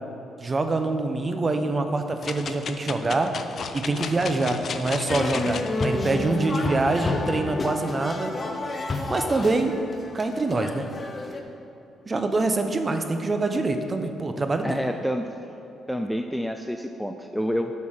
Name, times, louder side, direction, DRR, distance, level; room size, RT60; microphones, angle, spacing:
voice 1, 0.4-3.3 3.7-8.3 9.1-9.8 10.1-10.9 12.1-14.8, right 2 dB, 30° right, 6 dB, 0.8 m, -25 dB
sound 1, 2.2-5.9 6.4-6.5, left 6 dB, 55° left, 0.5 m, -34 dB
sound 2, 5.1-11.4, left 2 dB, 30° left, 0.9 m, -30 dB
voice 2, 14.6-15.3 15.9-17.7, equal, ahead, 5 dB, 0.4 m, -28 dB
8.6 x 5.5 x 6.5 m, 2.9 s
cardioid pair, 90°, 0 cm